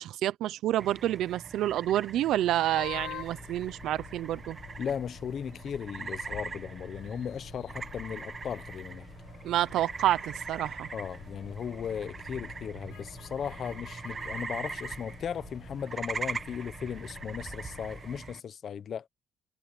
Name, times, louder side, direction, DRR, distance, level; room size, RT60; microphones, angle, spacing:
voice 1, 0.0-4.6 9.4-10.9, right 13 dB, 75° right, 0.7 m, -28 dB
sound 1, 0.8-18.4, right 4 dB, 25° right, 1.7 m, -42 dB
sound 2, 2.7-18.2, left 13 dB, 85° left, 5.0 m, -48 dB
voice 2, 4.8-9.1 10.9-19.1, left 8 dB, 45° left, 1.0 m, -37 dB
cardioid pair, 155°, 0 cm